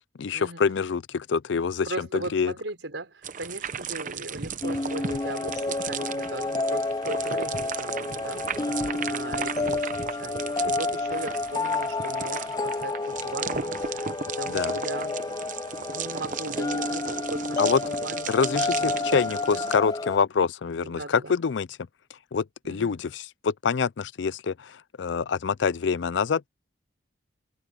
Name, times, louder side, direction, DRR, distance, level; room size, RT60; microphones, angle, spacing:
voice 1, 0.2-2.5 14.5-14.8 17.6-17.8 18.3-21.7 22.3-26.5, left 5 dB, 75° left, 0.5 m, -26 dB
voice 2, 1.9-8.5 9.0-15.2 15.9-19.8 20.7-21.4 22.6-23.0, right 2 dB, 80° right, 5.0 m, -38 dB
sound 1, 3.2-19.8, right 6 dB, 45° right, 0.8 m, -35 dB
sound 2, 4.6-20.2, left 3 dB, 20° left, 0.4 m, -30 dB
head